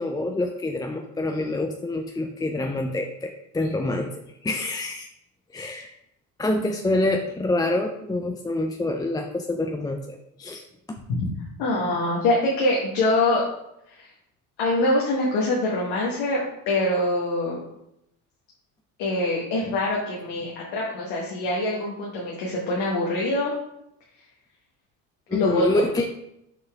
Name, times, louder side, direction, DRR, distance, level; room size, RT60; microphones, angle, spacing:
voice 1, 0.0-4.1 4.4-5.1 5.5-5.9 6.4-10.6 25.3-26.1, left 2 dB, 10° left, 4 dB, 0.4 m, -26 dB
voice 2, 11.6-13.5 13.9-14.1 14.6-17.6 19.0-23.6 25.3-25.8, left 2 dB, 70° left, -3 dB, 1.6 m, -24 dB
6.6 x 4.7 x 3.5 m, 0.82 s
supercardioid pair, 80°, 43 cm